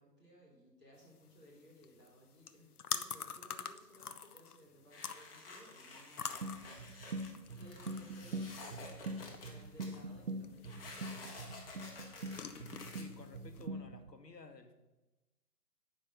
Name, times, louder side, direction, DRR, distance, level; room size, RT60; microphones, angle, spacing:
voice 1, 0.0-12.4, equal, 5° right, -13 dB, 0.7 m, -61 dB
sound 1, 1.0-13.7, left 7 dB, 65° left, 0.7 m, -47 dB
sound 2, 4.9-10.0 10.6-13.0, left 3 dB, 35° left, 1.5 m, -52 dB
sound 3, 6.4-14.1, right 2 dB, 50° right, 0.6 m, -44 dB
voice 2, 12.9-14.7, left 3 dB, 85° left, 7 dB, 1.2 m, -54 dB
8.6 x 5.3 x 5.3 m, 1.1 s
figure-of-eight pair, 140°, 48 cm